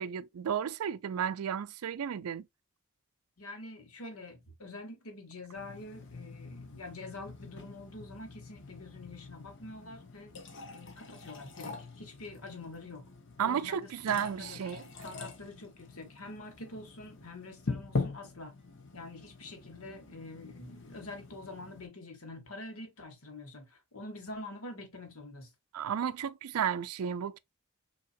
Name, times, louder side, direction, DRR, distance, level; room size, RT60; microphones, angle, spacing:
voice 1, 0.0-2.5 13.4-14.8 25.7-27.4, right 8 dB, 85° right, 0.4 m, -33 dB
voice 2, 3.4-10.4 10.7-13.1 13.4-14.6 15.0-18.5 18.9-25.5, left 2 dB, 80° left, 1.5 m, -46 dB
sound 1, 5.6-21.9, left 3 dB, 60° left, 1.0 m, -43 dB
5.6 x 2.9 x 2.5 m
head